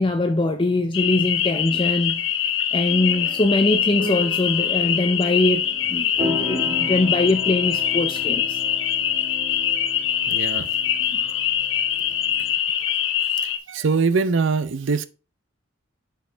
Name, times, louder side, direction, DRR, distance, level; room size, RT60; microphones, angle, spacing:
voice 1, 0.0-2.3 2.7-8.6 11.1-11.4, left 2 dB, 25° left, 0.5 m, -22 dB
sound 1, 0.9-13.6, left 9 dB, 60° left, 0.7 m, -23 dB
sound 2, 2.9-12.5, equal, 30° right, 2.8 m, -36 dB
voice 2, 10.3-10.7 13.7-15.1, right 4 dB, 60° right, 0.6 m, -22 dB
6.4 x 5.6 x 3.4 m
head